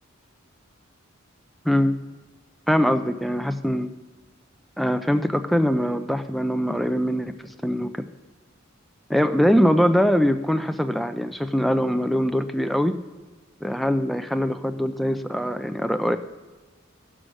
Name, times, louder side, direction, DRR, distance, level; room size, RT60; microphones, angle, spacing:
voice 1, 1.6-2.0 2.7-3.9 4.8-8.1 9.1-12.9 13.6-16.2, equal, ahead, 8 dB, 0.4 m, -22 dB
15.0 x 6.3 x 6.3 m, 1.3 s
head